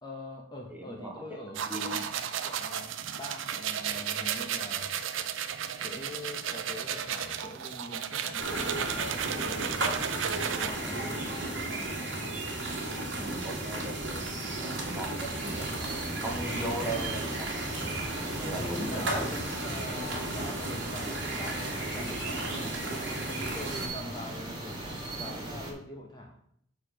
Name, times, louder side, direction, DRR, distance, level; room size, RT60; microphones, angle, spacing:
voice 1, 0.0-2.0 2.4-4.9 5.8-11.9 18.4-24.8 25.1-26.3, left 1 dB, 20° left, 0 dB, 0.9 m, -44 dB
voice 2, 0.7-1.2 1.7-2.4 10.6-10.9 13.2-14.2 14.6-15.8 16.2-17.5 18.4-19.4 19.9-20.2, right 1 dB, 10° right, 0 dB, 1.4 m, -39 dB
sound 1, 1.5-10.7, right 8 dB, 90° right, 0.5 m, -34 dB
sound 2, 8.4-23.9, right 2 dB, 65° right, 2.2 m, -34 dB
sound 3, 15.4-25.7, right 1 dB, 25° right, 1.5 m, -39 dB
6.8 x 4.8 x 5.1 m, 0.67 s
head